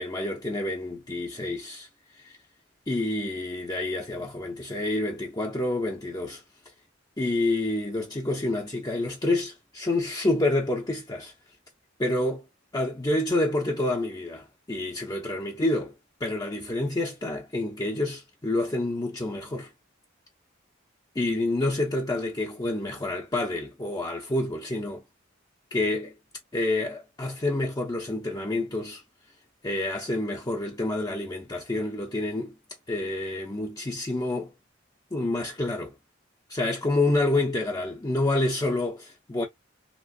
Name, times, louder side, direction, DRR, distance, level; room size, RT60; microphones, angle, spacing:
voice 1, 0.0-1.9 2.2-2.4 2.9-6.4 7.2-11.3 12.0-12.4 12.7-15.9 16.2-19.7 21.2-25.0 25.7-26.1 26.5-29.0 29.6-32.5 32.9-34.5 35.1-35.9 36.5-39.5, left 2 dB, 20° left, 0.7 m, -28 dB
3.1 x 3.0 x 2.7 m
head